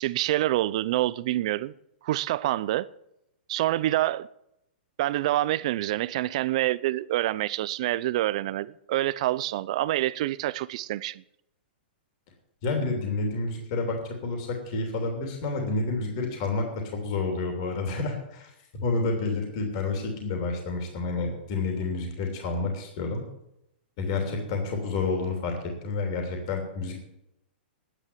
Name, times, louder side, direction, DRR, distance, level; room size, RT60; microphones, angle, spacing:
voice 1, 0.0-1.7 2.0-2.9 3.5-4.3 5.0-11.2, right 15 dB, 40° right, 0.5 m, -27 dB
voice 2, 12.6-23.2 24.0-27.0, left 3 dB, 35° left, 3.0 m, -29 dB
11.0 x 9.9 x 9.8 m
hypercardioid pair, 175°, 6 cm